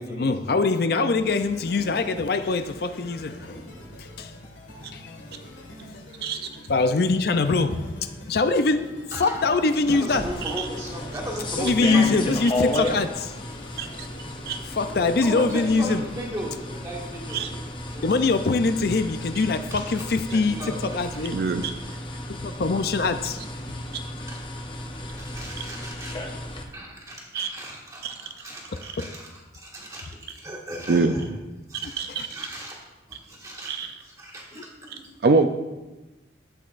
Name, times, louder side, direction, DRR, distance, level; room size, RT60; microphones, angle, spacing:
voice 1, 0.1-3.6 4.0-4.3 4.9-5.2 6.7-8.9 9.2-10.3 11.6-13.3 14.7-16.0 18.0-21.4 22.3-23.4 23.7-23.8 29.0-29.1 32.2-32.3, left 3 dB, 55° left, 9 dB, 0.5 m, -23 dB
sound 1, 1.1-20.5, left 1 dB, 80° left, 1.8 m, -46 dB
voice 2, 3.3-3.6 9.1-9.6 9.9-12.2 15.2-17.5 17.9-18.1 19.7-21.2 25.2-26.1 26.7-31.3 31.7-32.8 33.1-35.0, right 1 dB, 20° right, -2 dB, 1.7 m, -37 dB
sound 2, 10.1-26.6, left 1 dB, 25° left, 0.8 m, -33 dB
voice 3, 21.3-21.7 27.3-27.5 28.0-28.1 28.8-28.9 30.9-31.1 32.0-32.5 33.7-33.9 35.2-35.5, right 4 dB, 55° right, 7 dB, 0.4 m, -24 dB
12.5 x 8.1 x 2.5 m, 1.1 s
head